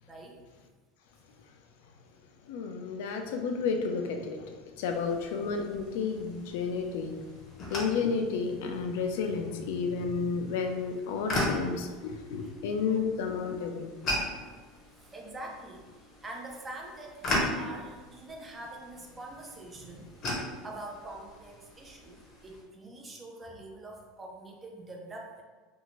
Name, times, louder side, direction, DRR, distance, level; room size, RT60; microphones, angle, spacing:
voice 1, 2.4-7.2 7.5-13.9, left 5 dB, 70° left, 0.4 m, -31 dB
sound 1, 4.9-22.6, left 1 dB, 30° left, 0.7 m, -38 dB
voice 2, 15.0-15.9 16.2-20.2 20.6-25.4, right 2 dB, 15° right, 0.4 m, -44 dB
2.7 x 2.5 x 3.0 m
supercardioid pair, 160°, 0 cm